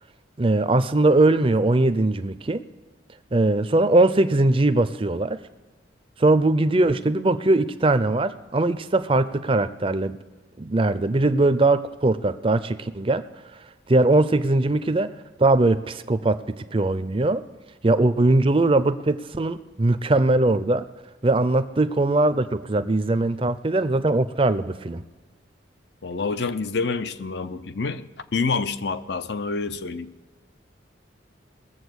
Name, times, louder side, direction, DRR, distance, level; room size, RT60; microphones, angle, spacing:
voice 1, 0.4-2.6 3.3-5.4 6.2-10.2 10.6-13.2 13.9-15.1 15.4-17.4 17.8-20.8 21.2-25.0, right 2 dB, 30° right, 0.5 m, -20 dB
voice 2, 26.0-30.1, left 4 dB, 60° left, 0.6 m, -27 dB
20.0 x 7.6 x 6.3 m
head